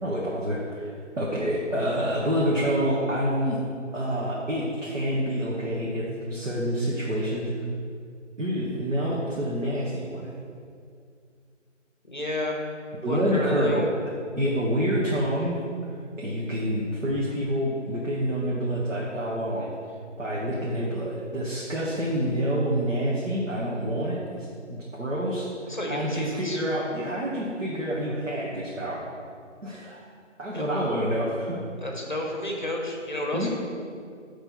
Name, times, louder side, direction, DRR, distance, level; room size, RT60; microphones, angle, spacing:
voice 1, 0.0-3.6 3.9-7.5 8.4-10.3 13.0-13.8 14.4-15.6 16.2-19.7 20.2-29.0 29.6-30.0 30.4-31.8 33.3-33.5, equal, 75° right, -6 dB, 1.3 m, -27 dB
voice 2, 12.0-12.6 13.1-13.9 25.7-26.6 30.5-30.6 31.8-33.5, left 1 dB, 40° left, 0 dB, 0.8 m, -31 dB
8.1 x 3.4 x 4.5 m, 2.2 s
figure-of-eight pair, 175°, 37 cm